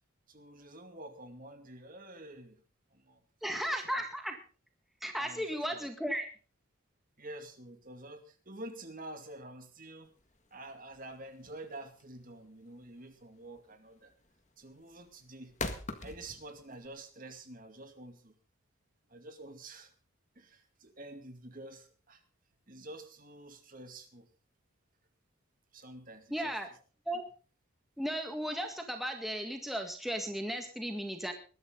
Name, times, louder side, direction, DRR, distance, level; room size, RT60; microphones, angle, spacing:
voice 1, 0.3-2.6 2.9-3.2 3.5-3.6 3.9-4.0 5.1-5.9 7.2-10.1 10.5-14.1 14.6-15.5 16.0-18.3 19.1-19.9 20.4-22.2 22.7-24.3 25.7-26.6, right 1 dB, 40° right, 7 dB, 2.3 m, -48 dB
voice 2, 3.4-4.4 5.0-6.3 26.3-26.7 27.1-27.2 28.0-31.3, equal, ahead, 4 dB, 1.8 m, -35 dB
sound 1, 10.1-16.9, left 3 dB, 35° left, 1.7 m, -43 dB
20.5 x 13.0 x 4.0 m, 0.38 s
head